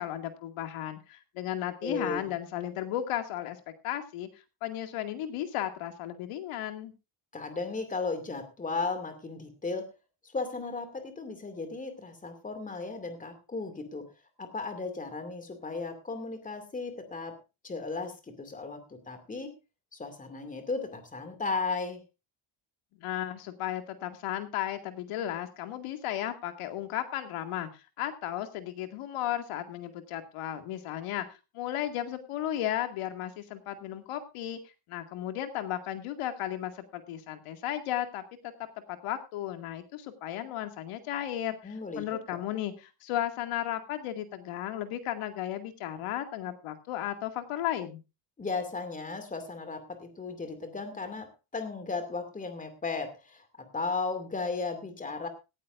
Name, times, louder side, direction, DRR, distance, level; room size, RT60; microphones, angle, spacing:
voice 1, 0.0-4.3 4.6-6.9 23.0-31.3 31.5-34.6 34.9-38.2 38.9-48.0, left 12 dB, 85° left, 7 dB, 2.3 m, -34 dB
voice 2, 1.8-2.3 7.3-9.9 10.2-14.1 14.4-17.4 17.6-19.5 19.9-22.0 41.6-42.0 48.4-55.3, left 4 dB, 15° left, 9 dB, 2.4 m, -35 dB
18.0 x 14.5 x 2.6 m, 0.28 s
cardioid pair, 170°, 50 cm